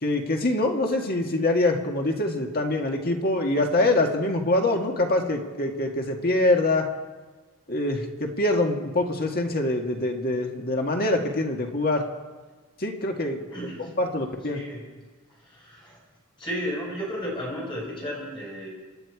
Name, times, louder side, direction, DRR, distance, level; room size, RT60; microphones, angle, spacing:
voice 1, 0.0-6.9 7.7-12.1 12.8-13.5 14.0-14.6, left 2 dB, 45° left, 2 dB, 1.8 m, -24 dB
voice 2, 13.5-13.9 14.5-14.8 15.4-16.0 16.4-18.7, equal, 25° left, -3 dB, 6.9 m, -33 dB
27.0 x 10.5 x 4.8 m, 1.3 s
head